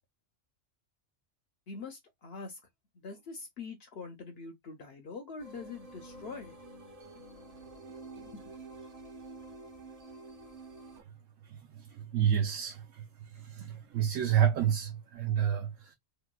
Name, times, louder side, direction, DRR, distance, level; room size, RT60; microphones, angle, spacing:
voice 1, 1.7-2.6 2.9-6.6 7.1-7.2 8.1-8.4, left 4 dB, 60° left, 0.8 m, -44 dB
sound 1, 5.4-11.0, right 2 dB, 35° right, 0.8 m, -49 dB
voice 2, 11.5-13.0 13.3-15.9, right 9 dB, 80° right, 1.0 m, -29 dB
3.2 x 2.9 x 2.2 m
omnidirectional pair, 1.3 m